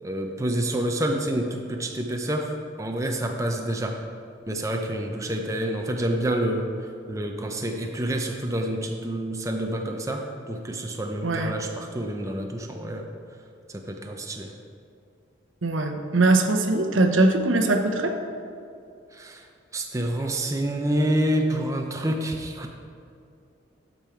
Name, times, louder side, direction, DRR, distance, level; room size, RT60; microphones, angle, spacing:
voice 1, 0.0-2.5 2.8-4.0 4.5-6.7 7.1-13.1 13.7-14.5 19.1-19.4 19.7-22.7, right 1 dB, 15° right, 2 dB, 0.5 m, -28 dB
voice 2, 11.2-11.5 15.6-18.2, right 2 dB, 80° right, 5 dB, 0.8 m, -21 dB
12.0 x 5.4 x 4.5 m, 2.4 s
head